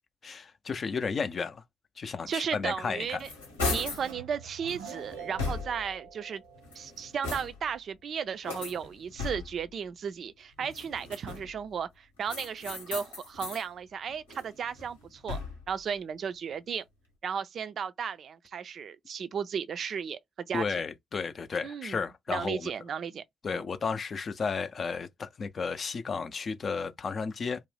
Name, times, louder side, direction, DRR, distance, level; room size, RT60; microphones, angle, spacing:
voice 1, 0.2-1.6 2.0-3.2 20.5-22.7 23.4-27.6, left 5 dB, 45° left, 0.4 m, -33 dB
voice 2, 2.3-3.3 3.7-6.4 6.8-15.4 15.7-16.8 17.2-20.2 20.5-20.6 21.6-22.0 22.3-23.2 23.5-23.6, right 7 dB, 55° right, 0.4 m, -35 dB
sound 1, 2.8-4.1 4.7-6.0 6.5-7.8 8.4-9.7 10.6-11.6 12.3-13.7 14.1-15.7, left 3 dB, 85° left, 0.9 m, -37 dB
Keyboard (musical), 3.8-7.1, right 6 dB, 85° right, 0.7 m, -46 dB
2.5 x 2.0 x 3.3 m
figure-of-eight pair, 40°, 0 cm